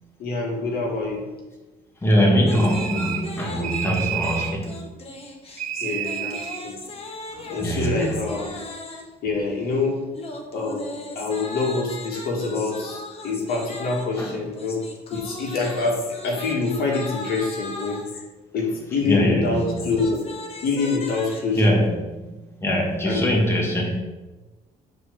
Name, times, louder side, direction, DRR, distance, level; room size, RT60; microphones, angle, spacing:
voice 1, 0.2-1.2 5.8-6.8 7.5-8.6 9.2-10.0 10.5-14.8 15.1-18.0 18.5-20.2 20.6-21.7 23.0-23.2, left 3 dB, 65° left, -1 dB, 2.3 m, -26 dB
voice 2, 2.0-4.9 7.3-8.2 14.2-14.4 19.0-19.8 21.6-22.0 22.6-24.0, equal, 15° left, -1 dB, 2.0 m, -22 dB
sound 1, 2.4-9.2 10.1-18.2 19.5-21.7, left 2 dB, 35° left, 1.6 m, -38 dB
sound 2, 2.5-3.3 3.6-4.6 5.6-6.6, right 10 dB, 50° right, 0.7 m, -30 dB
7.8 x 4.6 x 6.6 m, 1.2 s
cardioid pair, 110°, 17 cm